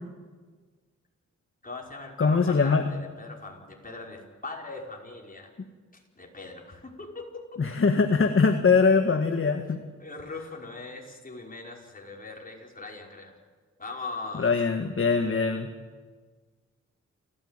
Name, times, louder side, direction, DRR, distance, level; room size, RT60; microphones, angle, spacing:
voice 1, 1.6-5.5 5.9-7.2 10.0-13.3 13.8-14.5, left 3 dB, 30° left, 0 dB, 5.2 m, -40 dB
voice 2, 2.2-2.8 7.6-9.8 14.4-15.7, left 4 dB, 45° left, 6 dB, 1.7 m, -22 dB
28.5 x 15.0 x 9.1 m, 1.5 s
cardioid pair, 75°, 30 cm